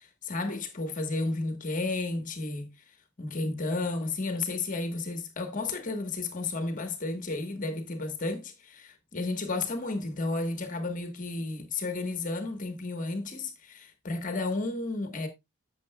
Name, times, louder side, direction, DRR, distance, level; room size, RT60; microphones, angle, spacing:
voice 1, 0.0-15.3, left 2 dB, 35° left, 1.2 m, -32 dB
11.5 x 7.4 x 2.2 m
head